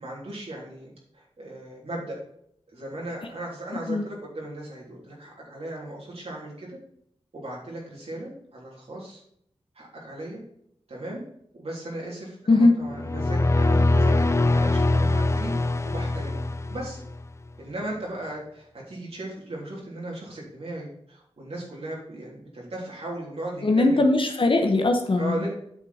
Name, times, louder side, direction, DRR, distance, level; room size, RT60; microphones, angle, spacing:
voice 1, 0.0-2.2 2.7-6.8 7.3-9.2 9.7-10.4 10.9-11.2 11.6-16.4 16.7-17.0 17.6-24.0 25.2-25.5, right 1 dB, 70° right, -4 dB, 3.3 m, -37 dB
sound 1, 12.9-17.2, left 2 dB, 25° left, 0.6 m, -23 dB
voice 2, 23.6-25.4, left 2 dB, 55° left, 4 dB, 1.1 m, -20 dB
9.0 x 6.2 x 4.3 m, 0.70 s
wide cardioid pair, 100°, 11 cm